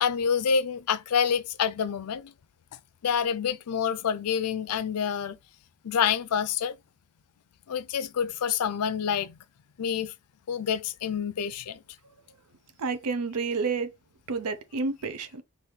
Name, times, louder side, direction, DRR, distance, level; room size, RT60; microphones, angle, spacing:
voice 1, 0.0-2.3 3.0-5.4 5.8-6.8 7.7-9.4 9.8-10.1 10.5-11.8, left 7 dB, 90° left, 0.5 m, -27 dB
voice 2, 12.8-13.9 14.3-15.4, right 4 dB, 80° right, 0.6 m, -29 dB
4.7 x 2.6 x 3.3 m
head